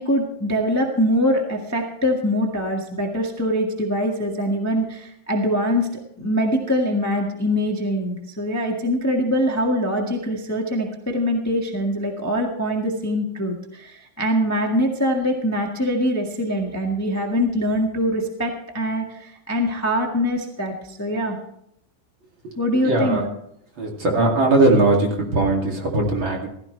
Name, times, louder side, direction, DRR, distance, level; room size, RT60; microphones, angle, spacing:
voice 1, 0.0-5.9 6.2-21.4 22.6-23.2, equal, 20° left, 1 dB, 0.4 m, -23 dB
voice 2, 22.8-23.3 23.8-26.5, right 2 dB, 40° right, -1 dB, 3.0 m, -19 dB
16.0 x 14.0 x 3.3 m, 0.75 s
omnidirectional pair, 3.6 m